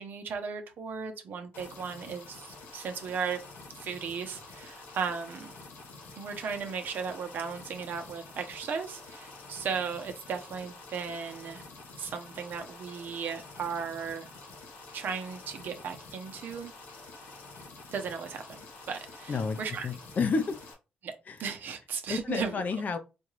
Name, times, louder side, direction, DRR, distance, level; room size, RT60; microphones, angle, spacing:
voice 1, 0.0-3.4 3.7-5.5 6.2-11.6 12.0-14.3 14.9-16.7 17.9-19.9 21.0-21.1 21.4-22.6, right 6 dB, 70° right, 0.8 m, -36 dB
sound 1, 1.5-20.7, left 3 dB, 90° left, 1.0 m, -48 dB
voice 2, 19.8-20.6 21.3-21.4 22.1-23.0, left 4 dB, 55° left, 0.6 m, -30 dB
4.3 x 2.4 x 3.1 m
cardioid pair, 75°, 3 cm